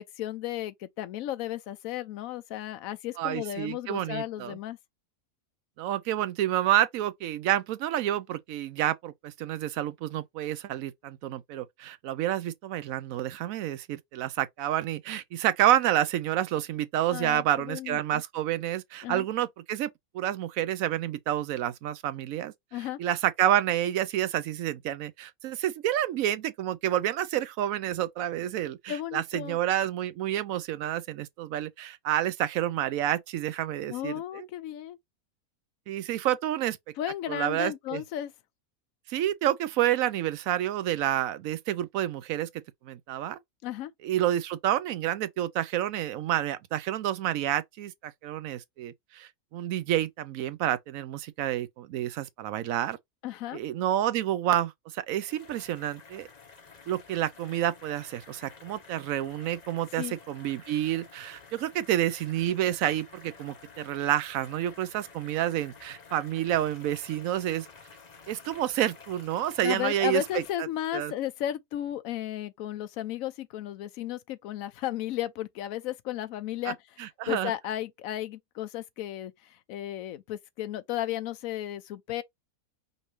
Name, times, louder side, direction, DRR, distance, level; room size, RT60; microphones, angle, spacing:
voice 1, 0.0-4.8 17.1-18.2 19.0-19.2 22.7-23.0 28.9-29.6 33.9-35.0 37.0-38.3 43.6-43.9 53.2-53.6 60.0-60.1 69.6-76.8 77.3-82.2, left 12 dB, 70° left, 1.0 m, -34 dB
voice 2, 3.2-4.6 5.8-19.9 20.1-22.5 23.0-34.5 35.9-36.8 37.3-38.0 39.1-42.5 42.8-43.4 44.0-53.0 53.5-56.3 56.9-67.7 68.3-70.4 70.9-71.1 76.7-76.8 77.0-77.5, right 12 dB, 75° right, 1.0 m, -29 dB
sound 1, 55.2-70.5, left 5 dB, 35° left, 0.9 m, -51 dB
5.3 x 2.6 x 3.2 m
omnidirectional pair, 1.6 m